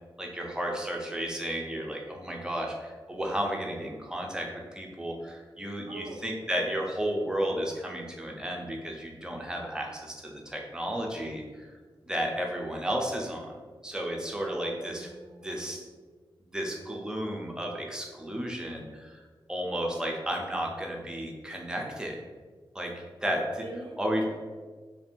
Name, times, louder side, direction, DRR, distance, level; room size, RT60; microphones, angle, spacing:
voice 1, 0.2-11.7 12.0-13.5 13.8-15.1 15.4-15.9 16.5-19.2 19.5-22.2 22.7-23.6 24.0-24.3, equal, 10° right, 0 dB, 0.5 m, -33 dB
voice 2, 5.9-6.3 14.4-15.9 23.6-24.4, right 2 dB, 65° right, 2 dB, 0.5 m, -45 dB
3.2 x 2.5 x 4.3 m, 1.4 s
wide cardioid pair, 150°, 9 cm